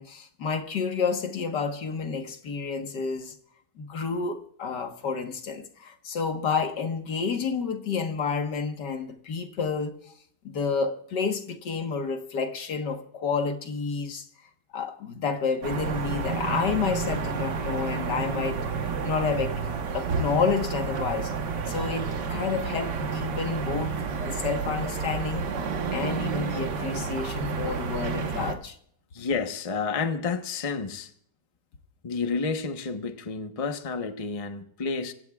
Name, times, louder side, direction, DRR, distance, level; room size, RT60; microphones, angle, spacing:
voice 1, 0.0-3.4 3.8-9.9 10.4-14.3 14.7-18.6 19.0-19.6 19.9-21.3 21.7-25.4 25.9-28.8, left 5 dB, 80° left, 2.0 m, -30 dB
sound 1, 15.6-28.6, right 5 dB, 80° right, 1.9 m, -30 dB
voice 2, 29.1-31.1 32.0-35.1, left 4 dB, 25° left, 0.9 m, -30 dB
25.0 x 16.0 x 2.4 m
omnidirectional pair, 1.8 m